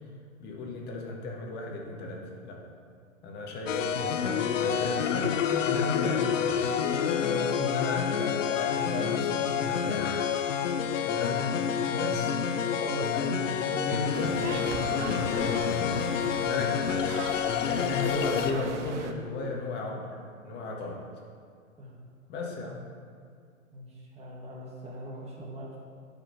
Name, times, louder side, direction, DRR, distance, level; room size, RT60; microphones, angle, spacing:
voice 1, 0.4-2.6 3.2-6.8 7.2-10.3 11.0-11.4 11.9-12.4 12.7-16.1 16.4-17.2 17.6-20.1 20.4-21.0 22.3-22.8, left 3 dB, 25° left, -1 dB, 1.3 m, -35 dB
sound 1, 3.7-18.5, left 8 dB, 65° left, 0.7 m, -28 dB
voice 2, 11.8-12.2 21.8-21.9 23.7-25.8, equal, 15° right, -3 dB, 1.6 m, -43 dB
sound 2, 14.1-19.1, right 5 dB, 60° right, 0.8 m, -38 dB
11.5 x 5.3 x 3.1 m, 2.1 s
hypercardioid pair, 125°, 41 cm